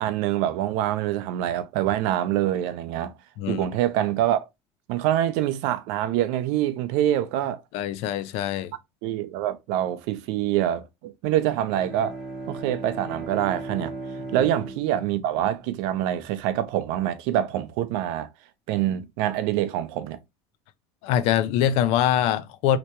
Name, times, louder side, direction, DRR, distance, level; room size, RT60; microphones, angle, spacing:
voice 1, 0.0-3.1 3.5-4.5 4.9-7.6 9.0-12.2 12.5-13.9 14.3-18.3 18.7-20.2, right 12 dB, 60° right, 0.5 m, -25 dB
voice 2, 7.7-8.7 14.4-14.5 21.0-22.8, left 10 dB, 50° left, 0.4 m, -23 dB
Bowed string instrument, 11.3-16.0, right 2 dB, ahead, 1.8 m, -37 dB
3.2 x 2.9 x 2.9 m
cardioid pair, 175°, 13 cm